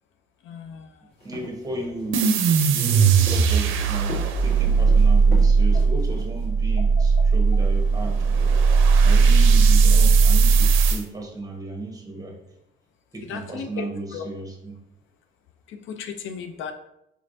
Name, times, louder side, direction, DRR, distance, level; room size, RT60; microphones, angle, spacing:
voice 1, 0.4-0.9 13.2-14.3 15.7-16.7, left 7 dB, 80° left, 7 dB, 0.5 m, -35 dB
sound 1, 1.1-6.5, left 1 dB, 55° left, 1.5 m, -39 dB
voice 2, 1.2-2.3 2.7-4.1 4.4-8.3 9.0-12.4 13.1-14.8, right 2 dB, 20° right, 1 dB, 1.0 m, -34 dB
sound 2, 2.1-11.0, right 5 dB, 85° right, 0.5 m, -18 dB
4.7 x 3.2 x 2.6 m, 0.82 s
cardioid pair, 90°, 20 cm